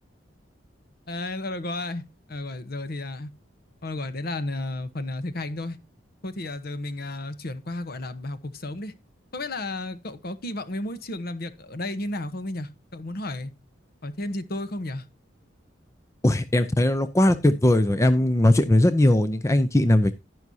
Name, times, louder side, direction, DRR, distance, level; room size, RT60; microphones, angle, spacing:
voice 1, 1.1-3.3 3.8-5.8 6.2-8.9 9.3-13.5 14.0-15.0, left 2 dB, 55° left, 1.0 m, -33 dB
voice 2, 16.2-20.1, left 1 dB, 15° left, 0.6 m, -19 dB
11.0 x 11.0 x 2.8 m
head